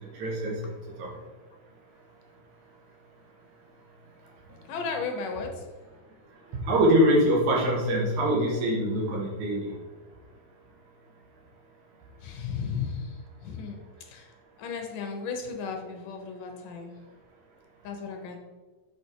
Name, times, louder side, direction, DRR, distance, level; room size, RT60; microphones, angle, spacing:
voice 1, 0.1-0.7 1.0-1.1 6.6-9.7, equal, 65° right, -2 dB, 2.9 m, -24 dB
voice 2, 4.7-5.6 12.2-14.3 14.6-17.0 17.8-18.4, left 5 dB, 80° left, 3 dB, 2.7 m, -35 dB
6.9 x 5.8 x 4.6 m, 1.3 s
omnidirectional pair, 3.8 m